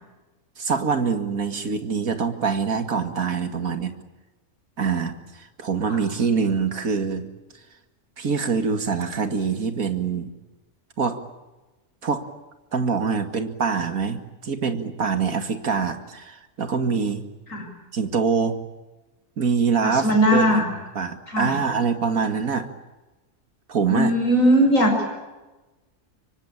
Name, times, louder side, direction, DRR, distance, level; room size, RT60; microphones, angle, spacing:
voice 1, 0.6-3.9 4.8-7.3 8.2-10.3 11.0-11.2 12.0-12.3 12.7-17.2 17.9-18.6 19.4-20.6 21.0-22.7 23.7-24.1, right 5 dB, 75° right, 8 dB, 2.5 m, -24 dB
voice 2, 19.8-20.6 21.3-21.5 23.9-24.9, equal, 65° left, 3 dB, 7.3 m, -19 dB
24.5 x 24.5 x 8.7 m, 1.1 s
omnidirectional pair, 1.5 m